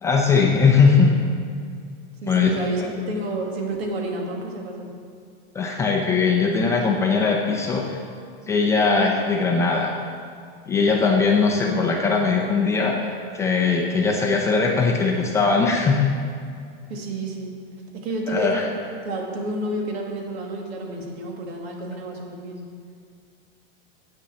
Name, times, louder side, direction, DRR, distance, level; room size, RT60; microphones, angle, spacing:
voice 1, 0.0-1.1 2.2-2.9 5.5-8.0 8.5-9.9 10.7-16.1 18.3-18.7, left 4 dB, 10° left, 0 dB, 0.5 m, -20 dB
voice 2, 2.2-4.9 16.9-17.6 17.9-18.6 19.0-22.7, right 2 dB, 85° right, 1 dB, 2.3 m, -30 dB
8.6 x 7.0 x 7.6 m, 2.3 s
supercardioid pair, 170°, 31 cm